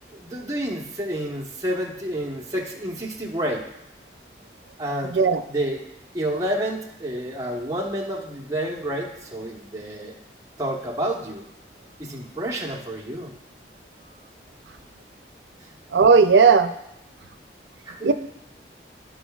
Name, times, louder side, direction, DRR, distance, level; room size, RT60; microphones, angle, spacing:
voice 1, 0.1-3.6 4.8-5.2 5.5-5.8 6.1-10.1 10.6-11.4 12.0-13.3 15.6-15.7 17.9-18.1, right 1 dB, 20° right, -1 dB, 1.1 m, -29 dB
voice 2, 15.9-16.7 18.0-18.1, right 5 dB, 85° right, 9 dB, 0.5 m, -15 dB
14.5 x 4.8 x 2.4 m, 0.83 s
head